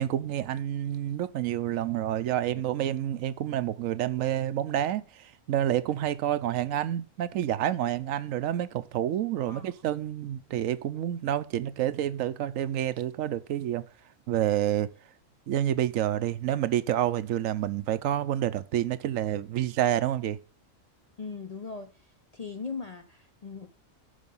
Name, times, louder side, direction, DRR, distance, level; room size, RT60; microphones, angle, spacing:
voice 1, 0.0-13.8 14.3-14.9 15.5-20.4, right 11 dB, 75° right, 1.0 m, -28 dB
voice 2, 21.2-21.9 22.3-23.7, left 5 dB, 40° left, 0.6 m, -39 dB
11.5 x 5.0 x 5.4 m
omnidirectional pair, 1.4 m